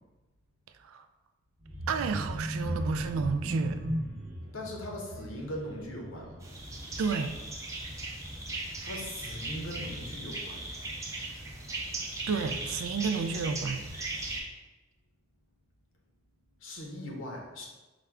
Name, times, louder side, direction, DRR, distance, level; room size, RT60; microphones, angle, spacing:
sound 1, 1.6-7.4 7.8-8.0 8.3-8.4, equal, 70° right, 0.8 m, -37 dB
voice 1, 1.9-3.8 7.0-7.3 12.3-13.8, right 5 dB, 90° right, 9 dB, 0.3 m, -31 dB
voice 2, 4.5-6.4 8.8-10.7 16.6-17.7, left 1 dB, 80° left, 0 dB, 0.8 m, -40 dB
sound 2, 6.4-14.4, right 2 dB, 15° right, 0.4 m, -38 dB
4.8 x 2.2 x 3.4 m, 1.2 s
head